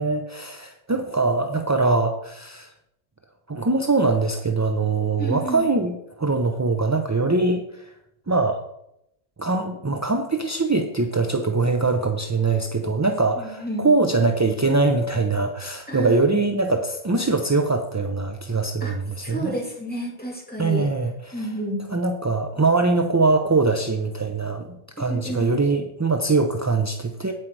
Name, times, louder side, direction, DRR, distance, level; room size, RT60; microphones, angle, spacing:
voice 1, 0.0-2.7 3.5-7.9 8.3-8.6 9.4-19.5 20.6-21.5 21.9-27.3, right 3 dB, 25° right, 5 dB, 0.4 m, -22 dB
voice 2, 5.2-5.7 13.4-13.9 15.9-16.2 18.8-19.0 19.2-20.9 21.3-21.8 25.0-25.6, right 1 dB, 10° left, -3 dB, 2.4 m, -30 dB
9.0 x 7.7 x 4.6 m, 0.79 s
omnidirectional pair, 1.1 m